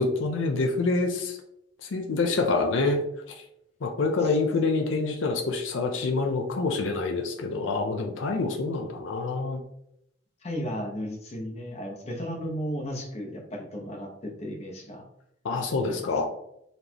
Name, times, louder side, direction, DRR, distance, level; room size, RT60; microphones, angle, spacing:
voice 1, 0.0-1.4 1.8-3.0 3.8-9.6 15.4-16.3, left 3 dB, 85° left, 3 dB, 0.5 m, -26 dB
voice 2, 10.4-15.0 15.9-16.1, equal, 35° left, -1 dB, 0.9 m, -34 dB
4.1 x 3.3 x 2.9 m, 0.77 s
head